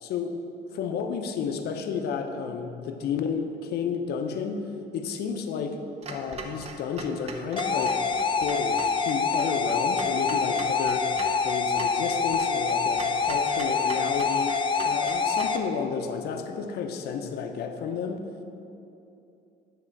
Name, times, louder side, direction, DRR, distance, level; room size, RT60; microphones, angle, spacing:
voice 1, 0.0-4.7 4.9-5.8 6.1-8.0 8.3-11.1 11.4-14.5 14.8-18.3, left 6 dB, 75° left, 5 dB, 0.8 m, -31 dB
Clock, 6.0-15.6, right 3 dB, 40° right, 0.8 m, -41 dB
sound 1, 7.6-15.6, left 5 dB, 30° left, 0.5 m, -26 dB
9.9 x 3.7 x 6.5 m, 2.8 s
cardioid pair, 110°, 17 cm